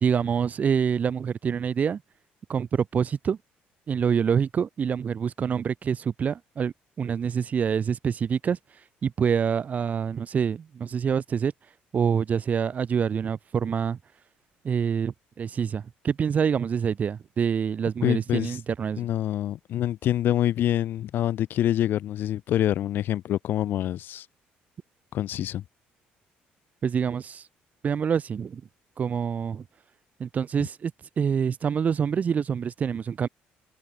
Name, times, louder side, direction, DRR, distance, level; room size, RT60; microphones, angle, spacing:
voice 1, 0.0-2.0 2.5-3.4 3.9-8.6 9.0-11.5 11.9-14.0 14.6-19.1 26.8-27.5 27.8-28.6 29.0-29.6 30.2-30.9 31.2-33.3, right 7 dB, 40° right, 0.6 m, -26 dB
voice 2, 18.0-18.6 19.0-24.3 25.1-25.6, left 12 dB, 65° left, 0.5 m, -26 dB
open air
cardioid pair, 85°, 4 cm